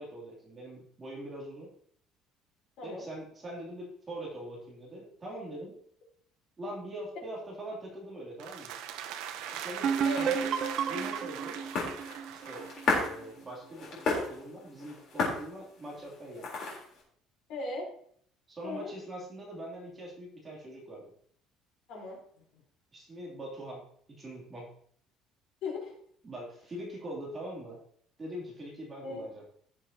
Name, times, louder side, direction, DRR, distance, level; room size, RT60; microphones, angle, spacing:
voice 1, 0.0-1.7 2.8-5.7 6.6-8.7 9.5-10.5 10.8-11.6 12.3-16.6 18.5-21.1 22.9-23.8 24.1-24.7 26.2-27.8 28.2-29.4, right 1 dB, 20° right, -4 dB, 2.9 m, -42 dB
sound 1, 8.4-13.2, right 10 dB, 75° right, 0.8 m, -40 dB
sound 2, 8.9-17.0, left 3 dB, 45° left, 3.7 m, -36 dB
sound 3, 9.8-13.4, right 7 dB, 40° right, 0.8 m, -32 dB
voice 2, 17.5-17.9 18.6-18.9 21.9-22.6 25.6-26.0 29.0-29.3, left 2 dB, 60° left, -2 dB, 4.1 m, -38 dB
16.5 x 6.8 x 2.9 m, 0.63 s
cardioid pair, 175°, 0 cm